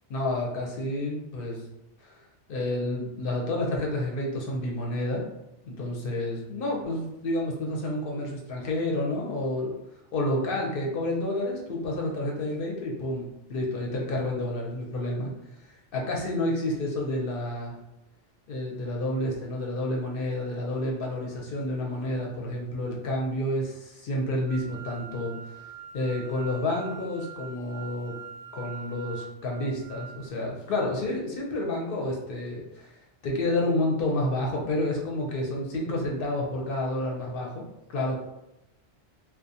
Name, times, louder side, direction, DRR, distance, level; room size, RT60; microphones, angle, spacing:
voice 1, 0.1-1.6 2.0-2.2 2.5-5.2 5.6-9.7 10.1-15.3 15.9-17.8 18.5-25.4 25.9-28.1 28.5-32.9 33.2-37.6 37.9-38.2, left 1 dB, 65° left, -1 dB, 0.7 m, -29 dB
sound 1, 24.5-30.3, right 7 dB, 65° right, 0.7 m, -44 dB
2.4 x 2.1 x 2.6 m, 0.90 s
omnidirectional pair, 1.1 m